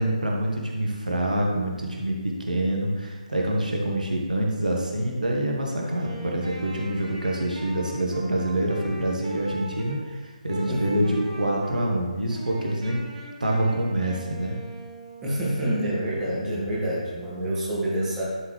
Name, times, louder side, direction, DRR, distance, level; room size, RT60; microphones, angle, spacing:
voice 1, 0.0-13.0 13.4-14.6 16.4-16.8, right 1 dB, 75° right, -1 dB, 1.3 m, -26 dB
Wind instrument woodwind instrument, 5.8-10.0 10.5-11.9 12.3-15.5, right 1 dB, 50° right, 1.9 m, -40 dB
voice 2, 10.6-11.2 15.2-18.2, right 1 dB, 10° right, -8 dB, 1.6 m, -28 dB
11.0 x 3.8 x 3.2 m, 1.4 s
figure-of-eight pair, 145°, 4 cm